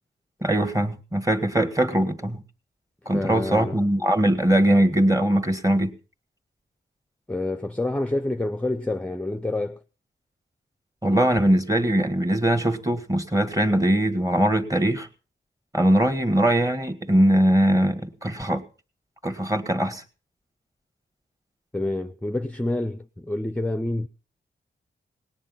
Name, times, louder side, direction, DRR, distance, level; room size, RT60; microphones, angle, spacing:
voice 1, 0.4-2.4 3.1-5.9 11.0-15.1 15.7-18.6 19.2-20.0, right 1 dB, 15° right, 1.7 m, -21 dB
voice 2, 3.1-3.8 7.3-9.8 21.7-24.1, left 2 dB, 5° left, 0.6 m, -28 dB
19.0 x 10.0 x 5.7 m
wide cardioid pair, 150°, 20 cm